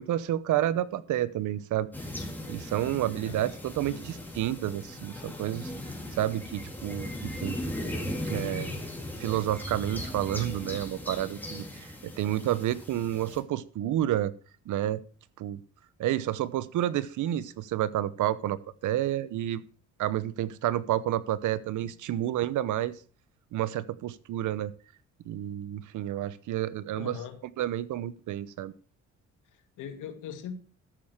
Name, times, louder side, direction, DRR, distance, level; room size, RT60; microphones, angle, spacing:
voice 1, 0.0-1.9 2.5-5.7 6.1-7.6 8.2-8.7 9.2-14.3 14.7-15.0 15.4-15.6 16.0-19.6 20.0-22.9 23.5-24.7 25.2-27.1 27.6-28.7, right 12 dB, 80° right, 1.0 m, -30 dB
sound 1, 1.9-13.4, left 1 dB, 5° left, 3.8 m, -38 dB
voice 2, 27.0-27.4 29.5-30.6, left 8 dB, 85° left, 2.5 m, -40 dB
13.5 x 7.6 x 6.5 m
cardioid pair, 90°, 30 cm